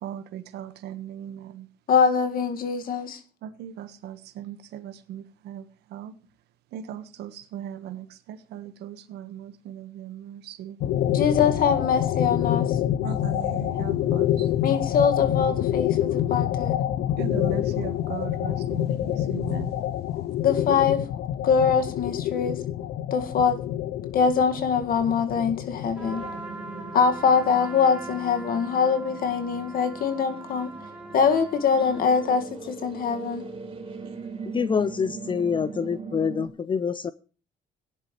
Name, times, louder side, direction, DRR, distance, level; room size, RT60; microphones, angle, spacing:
voice 1, 0.0-1.7 3.4-5.6 5.9-6.1 6.7-10.8 13.0-14.5 17.2-19.7, right 10 dB, 85° right, 1.4 m, -38 dB
voice 2, 1.9-3.2 11.1-12.7 14.6-16.8 20.4-21.0 21.4-22.6 23.1-23.6 24.1-26.2 26.9-30.7 31.1-33.5, left 6 dB, 60° left, 2.0 m, -23 dB
sound 1, 10.8-26.9, left 12 dB, 80° left, 0.7 m, -27 dB
Trumpet, 26.0-32.4, right 2 dB, 10° right, 7.2 m, -41 dB
sound 2, 26.0-36.5, right 4 dB, 30° right, 4.0 m, -40 dB
voice 3, 34.5-37.1, left 6 dB, 30° left, 0.5 m, -26 dB
17.0 x 10.5 x 3.2 m
cardioid pair, 110°, 17 cm